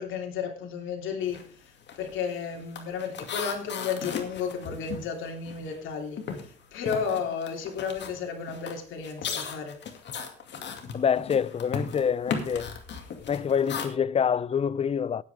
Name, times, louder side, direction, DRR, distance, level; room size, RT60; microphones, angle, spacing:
voice 1, 0.0-9.8, left 6 dB, 80° left, 3.0 m, -33 dB
sound 1, 1.2-1.5 1.8-5.9 6.2-13.9, left 6 dB, 65° left, 2.3 m, -37 dB
voice 2, 10.9-12.7 13.3-15.2, left 7 dB, 30° left, 0.5 m, -26 dB
18.5 x 8.2 x 3.5 m
cardioid pair, 90°, 20 cm